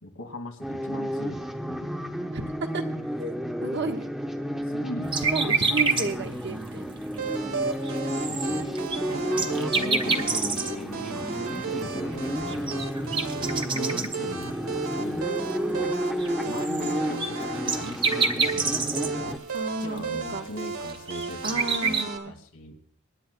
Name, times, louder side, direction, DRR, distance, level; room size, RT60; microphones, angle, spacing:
voice 1, 0.0-2.2 4.6-5.3 8.1-8.7 8.9-15.4 15.7-16.0 16.5-19.4 19.8-22.8, left 1 dB, 75° left, 4 dB, 2.2 m, -40 dB
sound 1, 0.6-19.4, equal, ahead, 0.9 m, -32 dB
voice 2, 2.3-2.8 3.2-3.3 3.6-4.1 5.2-6.9 19.5-20.0 20.3-20.5 21.4-22.3, right 2 dB, 55° right, 4 dB, 1.2 m, -32 dB
sound 2, 5.1-6.0 6.5-6.6 7.1-7.2 7.6-7.7 7.8-10.8 12.1-12.2 12.5-14.4 14.9-15.0 16.2-19.1 19.5-19.6 20.0-20.1 20.7-22.0, right 4 dB, 20° right, 0.9 m, -27 dB
sound 3, 7.2-22.2, right 4 dB, 90° right, 1.7 m, -34 dB
25.0 x 11.0 x 2.2 m, 0.63 s
head